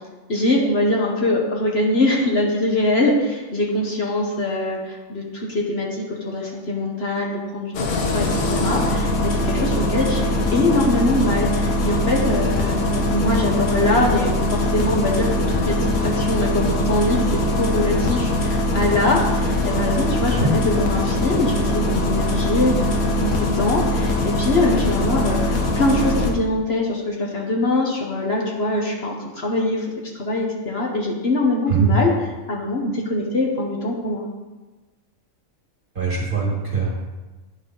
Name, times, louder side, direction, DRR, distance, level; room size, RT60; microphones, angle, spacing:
voice 1, 0.3-29.9 30.1-32.1 32.5-34.2, left 2 dB, 50° left, -1 dB, 1.2 m, -23 dB
Engine starting, 7.7-26.3, left 1 dB, 85° left, 1.4 m, -22 dB
voice 2, 36.0-37.0, right 5 dB, 40° right, -3 dB, 1.9 m, -22 dB
9.8 x 5.5 x 3.9 m, 1.2 s
omnidirectional pair, 1.4 m